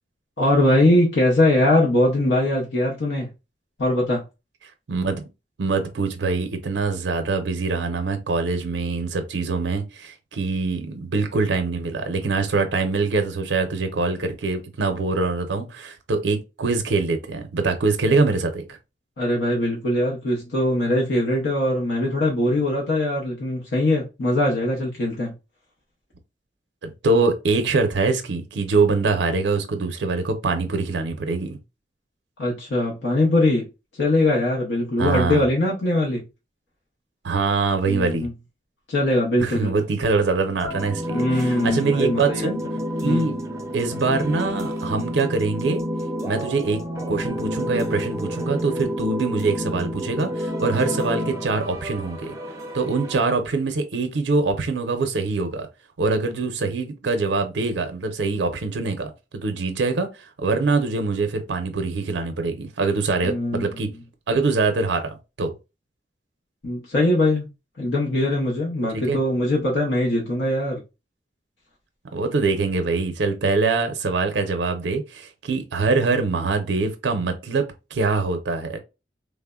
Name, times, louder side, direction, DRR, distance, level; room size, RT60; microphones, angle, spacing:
voice 1, 0.4-3.3 3.8-4.2 19.2-25.4 32.4-33.7 33.9-36.3 37.9-38.3 38.9-39.7 41.1-42.5 43.0-43.3 63.2-63.8 66.6-67.5 67.8-70.8, left 1 dB, 80° left, 0.7 m, -21 dB
voice 2, 4.9-5.2 5.6-18.8 26.8-31.6 35.0-35.4 37.2-38.3 39.4-42.6 43.0-43.4 43.7-45.8 46.2-46.8 47.1-52.3 52.7-55.7 56.0-63.9 64.3-65.1 65.4-65.5 69.1-69.2 72.1-78.8, right 3 dB, 85° right, 0.5 m, -24 dB
sound 1, 40.6-53.2, equal, 20° right, 0.5 m, -29 dB
3.2 x 2.0 x 2.2 m
head